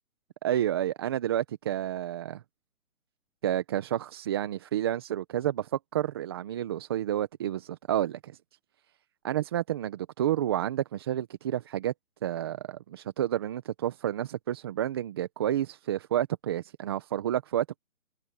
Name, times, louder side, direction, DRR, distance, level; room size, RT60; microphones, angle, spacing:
voice 1, 0.4-2.4 3.4-8.3 9.2-11.9 12.2-17.8, right 11 dB, 20° right, 0.8 m, -30 dB
hypercardioid pair, 160°, 42 cm